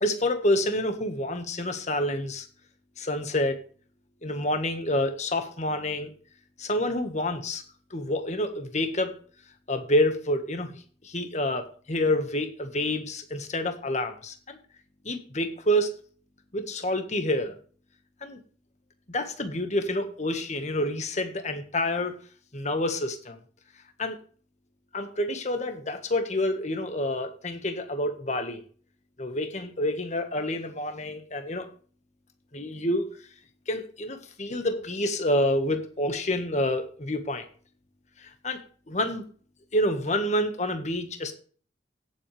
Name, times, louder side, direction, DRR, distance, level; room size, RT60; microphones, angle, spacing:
voice 1, 0.0-2.5 3.0-3.6 4.2-6.1 6.6-7.6 7.9-9.2 9.7-14.6 15.0-15.9 16.5-17.5 18.2-18.4 19.1-22.1 22.5-23.4 24.0-24.2 24.9-28.6 29.2-31.7 32.5-33.1 33.7-37.5 38.2-38.6 38.9-39.2 39.7-41.3, left 1 dB, 40° left, 7 dB, 1.6 m, -28 dB
17.0 x 7.7 x 3.4 m, 0.43 s
head